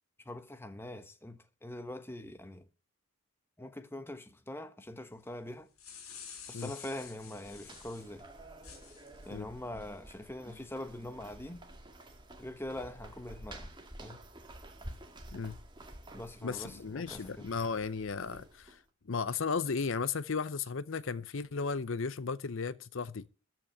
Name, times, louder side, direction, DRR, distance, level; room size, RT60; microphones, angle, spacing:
voice 1, 0.2-2.6 3.6-5.7 6.5-8.3 9.3-11.6 12.4-13.7 14.0-14.2 16.1-17.5, left 1 dB, 10° left, 1.1 m, -43 dB
sound 1, 5.5-8.1 8.6-9.3, left 7 dB, 85° left, 3.5 m, -49 dB
sound 2, 6.7-18.8, right 1 dB, 20° right, 1.9 m, -51 dB
voice 2, 16.4-18.8 19.1-23.2, left 5 dB, 65° left, 0.7 m, -35 dB
13.5 x 6.1 x 9.5 m
head